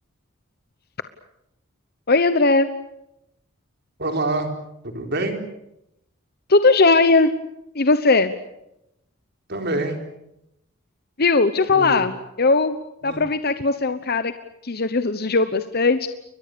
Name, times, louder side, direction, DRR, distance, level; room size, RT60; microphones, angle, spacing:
voice 1, 2.1-2.7 6.5-7.3 7.7-8.3 11.2-12.7 13.0-14.3 14.6-16.1, left 3 dB, 50° left, 10 dB, 1.1 m, -18 dB
voice 2, 4.0-4.5 4.8-5.4 9.5-10.0 11.7-12.0 13.0-13.3, right 2 dB, 55° right, 5 dB, 4.5 m, -26 dB
30.0 x 23.0 x 6.9 m, 0.83 s
head